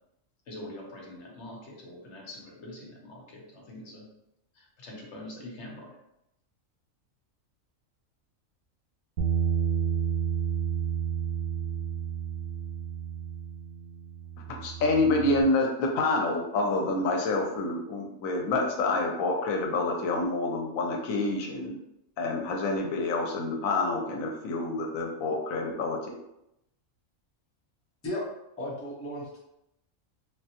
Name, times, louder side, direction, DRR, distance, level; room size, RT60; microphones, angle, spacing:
voice 1, 0.5-4.1 4.5-6.0, left 1 dB, 60° left, -1 dB, 1.0 m, -44 dB
Bass guitar, 9.2-15.4, right 8 dB, 90° right, 1.0 m, -31 dB
voice 2, 14.5-21.8 22.2-26.1, left 2 dB, 85° left, 1 dB, 1.0 m, -27 dB
voice 3, 28.6-29.4, left 1 dB, 15° left, -6 dB, 0.7 m, -34 dB
3.2 x 2.2 x 2.8 m, 0.83 s
omnidirectional pair, 1.4 m